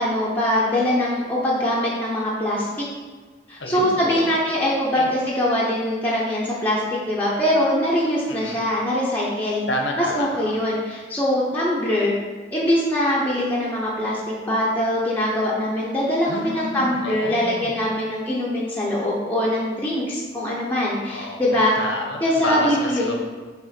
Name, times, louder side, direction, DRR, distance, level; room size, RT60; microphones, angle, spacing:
voice 1, 0.0-2.7 3.5-6.8 7.1-9.6 10.1-12.1 12.5-21.7 22.2-23.1, left 1 dB, 10° left, -7 dB, 0.8 m, -22 dB
voice 2, 3.6-4.3 5.0-5.1 8.3-8.6 9.7-10.6 16.3-17.7 21.1-23.2, left 1 dB, 80° left, 1 dB, 1.0 m, -29 dB
6.1 x 3.3 x 5.8 m, 1.4 s
head